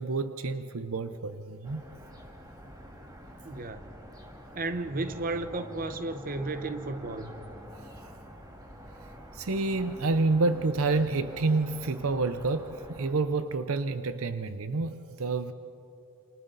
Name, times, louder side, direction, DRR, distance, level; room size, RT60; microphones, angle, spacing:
voice 1, 0.0-1.8 9.3-15.5, right 3 dB, 70° right, 11 dB, 0.7 m, -28 dB
sound 1, 1.6-13.1, equal, 15° right, 2.1 m, -47 dB
voice 2, 3.4-3.9 4.5-7.4, right 2 dB, 40° right, 9 dB, 1.0 m, -33 dB
29.0 x 28.0 x 4.0 m, 2.9 s
head